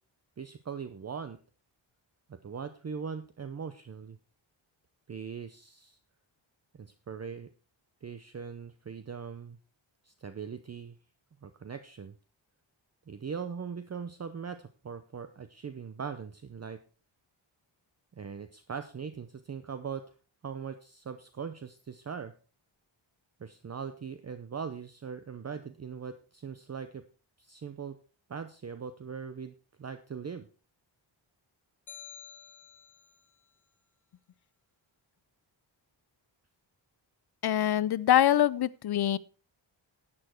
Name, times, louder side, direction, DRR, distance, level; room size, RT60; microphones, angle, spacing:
voice 1, 0.4-1.4 2.3-4.2 5.1-6.0 6.7-7.5 8.0-9.6 10.0-11.0 11.4-12.2 13.1-16.8 18.2-20.0 20.4-22.3 23.4-27.0 27.4-28.0 28.3-30.5, right 6 dB, 35° right, 0.7 m, -40 dB
sound 1, 31.9-33.2, left 7 dB, 40° left, 1.6 m, -49 dB
voice 2, 37.4-39.2, left 11 dB, 55° left, 0.5 m, -24 dB
11.5 x 8.7 x 4.4 m
wide cardioid pair, 150°, 47 cm